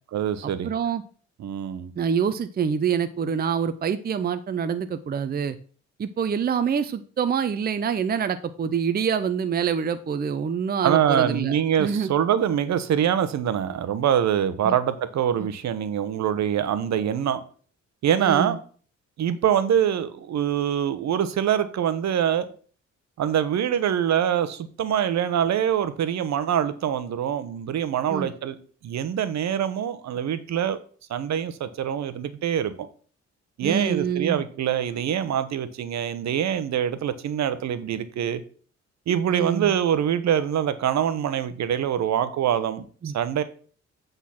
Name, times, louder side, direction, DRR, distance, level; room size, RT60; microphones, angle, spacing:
voice 1, 0.1-0.7 1.4-1.9 10.8-17.4 18.0-18.6 19.2-22.5 23.2-28.6 28.8-30.8 31.1-32.9 33.6-38.4 39.1-42.8 43.1-43.4, right 9 dB, 65° right, 0.9 m, -24 dB
voice 2, 0.6-1.0 2.0-5.6 6.0-12.1 14.6-14.7 15.4-15.5 18.2-18.6 28.1-28.3 33.6-34.4 39.3-39.7 43.0-43.1, right 7 dB, 30° right, 0.6 m, -26 dB
8.4 x 3.9 x 5.8 m
cardioid pair, 90°, 30 cm